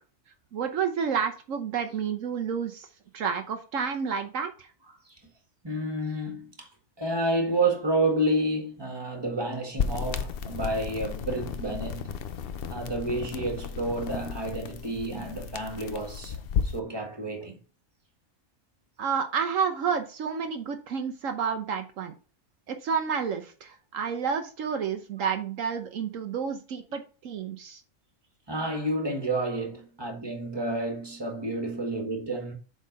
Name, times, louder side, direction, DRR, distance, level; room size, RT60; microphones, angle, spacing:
voice 1, 0.5-2.9 3.1-4.7 19.0-22.1 22.7-27.8, right 6 dB, 75° right, 1.2 m, -30 dB
voice 2, 5.6-6.7 7.0-12.1 12.7-17.6 28.5-32.5, right 1 dB, 20° right, 1.8 m, -30 dB
sound 1, 9.8-16.8, left 7 dB, 55° left, 0.7 m, -33 dB
7.5 x 3.8 x 5.3 m
omnidirectional pair, 1.4 m